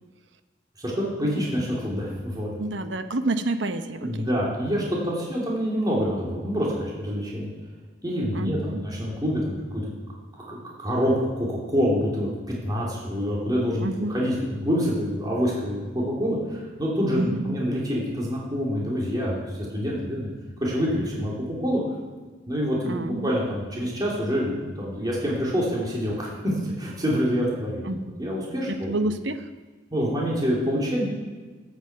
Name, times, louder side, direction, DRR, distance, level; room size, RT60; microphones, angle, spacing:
voice 1, 0.8-2.5 4.0-7.5 8.0-9.8 10.4-13.8 14.1-20.3 20.6-21.8 22.5-27.9 28.2-29.0 29.9-31.0, equal, 20° right, -4 dB, 3.0 m, -26 dB
voice 2, 2.6-4.3 8.3-8.9 13.8-14.2 17.2-17.6 22.8-23.3 27.8-28.1 28.7-29.5, right 2 dB, 80° right, 9 dB, 0.9 m, -29 dB
12.5 x 8.1 x 7.9 m, 1.3 s
head